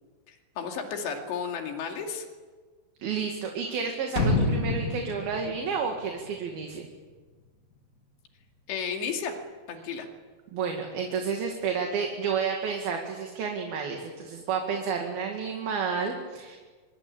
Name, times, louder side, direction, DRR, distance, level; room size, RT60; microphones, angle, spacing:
voice 1, 0.3-2.3 8.7-9.4 9.7-10.1, left 6 dB, 80° left, 3 dB, 4.7 m, -33 dB
voice 2, 3.0-6.9 10.5-16.6, right 6 dB, 65° right, 2 dB, 3.9 m, -31 dB
sound 1, 4.2-7.0 7.3-7.4, left 2 dB, 60° left, 0.8 m, -28 dB
24.5 x 24.5 x 8.8 m, 1.4 s
omnidirectional pair, 5.0 m